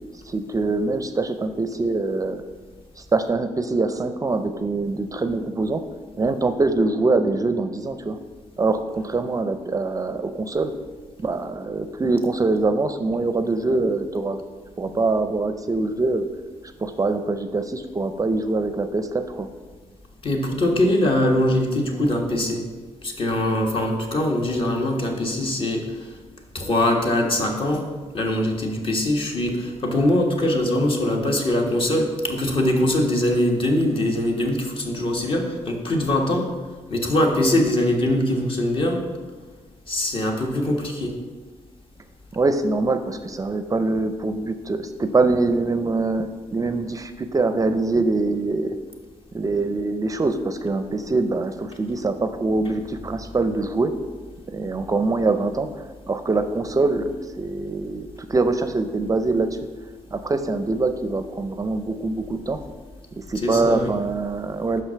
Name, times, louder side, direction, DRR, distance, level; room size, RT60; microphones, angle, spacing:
voice 1, 0.2-2.4 3.0-5.8 6.2-8.2 8.6-10.7 11.2-14.4 14.8-16.3 16.8-19.5 42.3-48.8 49.3-53.9 54.5-55.7 56.1-57.1 57.4-59.6 60.1-62.6 63.2-64.8, right 3 dB, 30° right, 9 dB, 0.5 m, -24 dB
voice 2, 20.2-22.6 23.0-26.2 26.5-27.8 28.1-36.5 36.9-39.0 39.9-41.1 63.3-63.9, left 1 dB, 45° left, 1 dB, 1.4 m, -22 dB
6.0 x 5.8 x 5.7 m, 1.4 s
cardioid pair, 85°, 12 cm